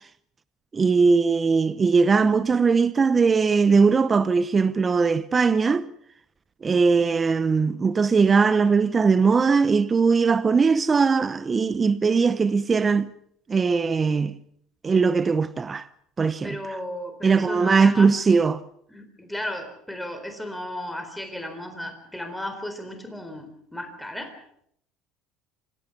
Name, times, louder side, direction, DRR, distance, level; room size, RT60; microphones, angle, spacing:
voice 1, 0.7-5.9 6.6-13.1 13.5-14.4 14.8-15.9 16.2-16.6 17.2-18.6, right 5 dB, 25° right, 0.8 m, -20 dB
voice 2, 16.4-18.1 18.9-24.3, left 1 dB, 5° left, 4.0 m, -34 dB
26.5 x 16.5 x 7.0 m
supercardioid pair, 115°, 0 cm